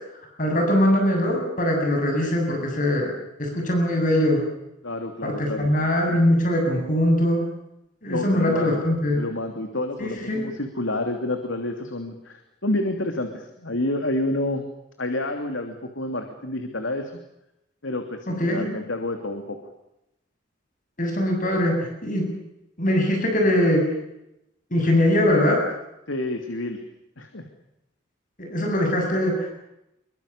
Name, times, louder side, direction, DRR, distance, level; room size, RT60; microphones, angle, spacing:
voice 1, 0.4-3.1 3.4-4.4 5.2-7.4 8.0-9.2 10.0-10.4 18.3-18.7 21.0-22.3 22.8-23.8 24.7-25.6 28.4-29.5, left 1 dB, 45° left, 2 dB, 7.4 m, -21 dB
voice 2, 4.8-5.7 8.1-8.8 9.2-14.6 15.0-17.2 17.8-19.6 26.1-26.8 27.2-27.4, left 1 dB, 90° left, 6 dB, 3.0 m, -29 dB
27.0 x 24.0 x 6.9 m, 0.86 s
head